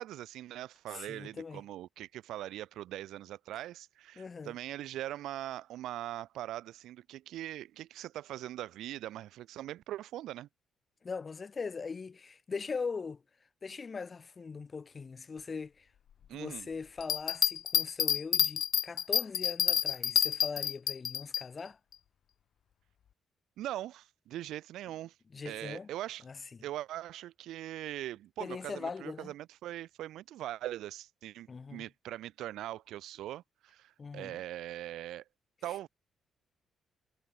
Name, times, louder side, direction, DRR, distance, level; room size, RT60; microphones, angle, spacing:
voice 1, 0.0-10.5 16.3-16.7 23.6-25.2 25.4-26.2 26.6-35.2 35.6-35.9, right 13 dB, 85° right, 5.7 m, -41 dB
voice 2, 0.9-1.6 4.2-4.5 11.0-13.2 13.6-15.9 16.3-21.8 25.3-25.9 26.2-26.4 28.4-29.3 31.5-31.8 34.0-34.4, left 5 dB, 35° left, 1.5 m, -40 dB
Bell, 17.0-21.4 21.9-22.0, left 9 dB, 65° left, 0.8 m, -28 dB
cardioid pair, 90°, 0 cm